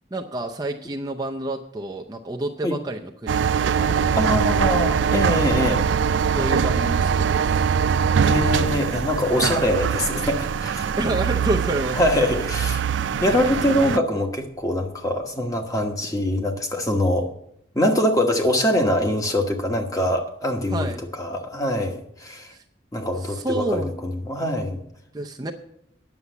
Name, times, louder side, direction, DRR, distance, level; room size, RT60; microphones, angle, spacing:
voice 1, 0.1-4.4 6.3-7.7 9.3-9.6 11.0-12.0 20.7-21.0 22.5-22.6 23.2-23.9 25.1-25.5, right 1 dB, 20° right, 2 dB, 0.6 m, -29 dB
sound 1, 3.3-14.0, right 7 dB, 75° right, 0.4 m, -22 dB
Thunder, 3.8-14.5, equal, 75° left, 2.0 m, -37 dB
voice 2, 4.2-5.9 8.2-10.9 11.9-12.8 13.2-17.3 17.7-22.5 22.9-24.8, left 1 dB, 20° left, 4 dB, 1.2 m, -23 dB
9.7 x 7.0 x 8.1 m, 0.75 s
head